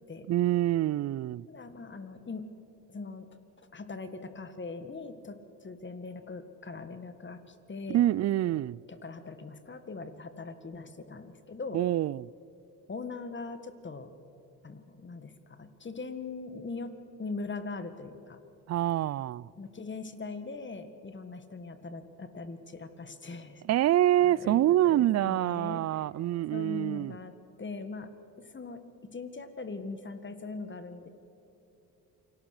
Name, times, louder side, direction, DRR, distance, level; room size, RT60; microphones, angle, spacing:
voice 1, 0.3-1.5 7.9-8.8 11.7-12.3 18.7-19.5 23.6-27.1, right 13 dB, 40° right, 0.4 m, -26 dB
voice 2, 1.5-2.5 2.9-3.3 3.7-8.0 8.4-8.6 8.9-11.8 12.9-14.1 14.6-16.9 17.2-18.4 19.6-23.6 24.2-25.8 26.5-27.3 27.6-28.1 28.4-28.8 29.1-31.1, left 3 dB, 30° left, 1.8 m, -41 dB
28.0 x 19.0 x 6.7 m
supercardioid pair, 80°, 40 cm